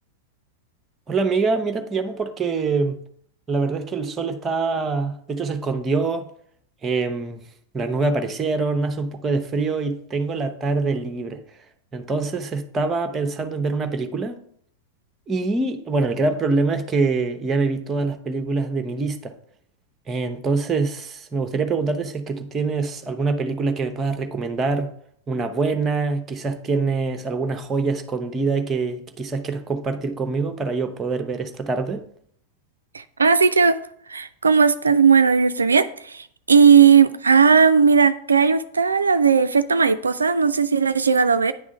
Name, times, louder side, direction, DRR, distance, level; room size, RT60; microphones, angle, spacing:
voice 1, 1.1-3.0 3.5-6.3 6.8-7.4 7.7-11.4 11.9-14.4 15.3-19.3 20.1-24.9 25.3-32.1, right 3 dB, 20° right, 0.7 m, -24 dB
voice 2, 32.9-33.8 34.1-41.5, right 6 dB, 75° right, 0.3 m, -17 dB
9.4 x 3.6 x 5.0 m
figure-of-eight pair, 90°, 0 cm